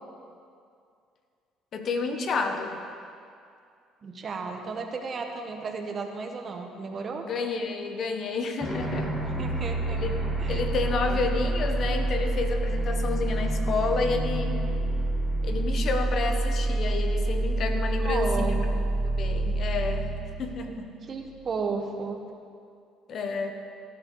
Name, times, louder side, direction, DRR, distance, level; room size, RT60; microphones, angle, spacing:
voice 1, 1.7-2.8 7.2-9.1 9.9-10.1 10.5-14.6 15.4-18.6 19.0-20.1 20.4-20.9 23.1-23.5, left 4 dB, 50° left, 6 dB, 1.3 m, -30 dB
voice 2, 4.0-7.2 9.4-10.0 10.4-10.6 11.1-11.2 18.0-18.7 21.0-22.2, right 4 dB, 40° right, 3 dB, 1.5 m, -33 dB
sound 1, 8.6-21.3, right 2 dB, 10° left, 4.0 m, -27 dB
17.5 x 11.5 x 4.0 m, 2.4 s
cardioid pair, 95°, 0 cm